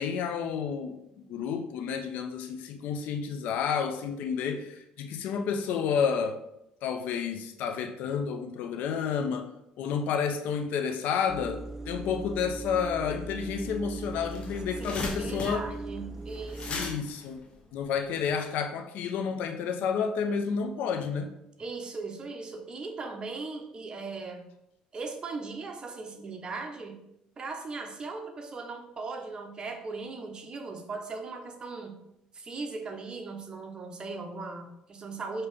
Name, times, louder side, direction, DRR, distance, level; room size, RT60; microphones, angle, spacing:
voice 1, 0.0-6.4 6.8-9.5 9.8-15.7 16.7-17.4 17.7-21.4, left 6 dB, 75° left, 6 dB, 0.4 m, -30 dB
sound 1, 11.3-17.0, right 2 dB, 15° right, 0.3 m, -39 dB
sound 2, 13.8-13.9 14.1-18.4, left 3 dB, 40° left, 0.9 m, -39 dB
voice 2, 14.8-17.0 21.6-24.5 24.9-27.0 27.4-31.9 32.3-35.5, right 3 dB, 30° right, 4 dB, 0.8 m, -38 dB
5.0 x 2.8 x 3.4 m, 0.82 s
cardioid pair, 95°, 3 cm